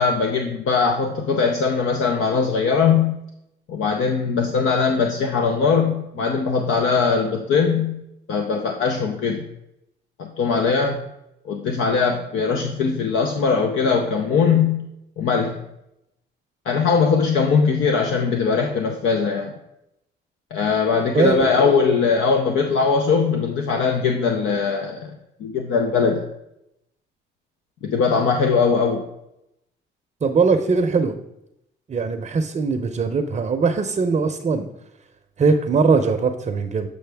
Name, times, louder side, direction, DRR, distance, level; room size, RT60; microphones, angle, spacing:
voice 1, 0.0-3.2 3.7-8.0 8.3-9.5 10.2-11.0 11.4-14.9 15.2-15.5 16.7-19.5 20.5-25.1 25.4-26.2 27.8-29.0, left 5 dB, 80° left, 3 dB, 0.7 m, -20 dB
voice 2, 30.2-31.2 31.9-34.7 35.4-36.9, right 4 dB, 35° right, 7 dB, 0.6 m, -20 dB
7.7 x 5.1 x 3.4 m, 0.82 s
cardioid pair, 90°, 20 cm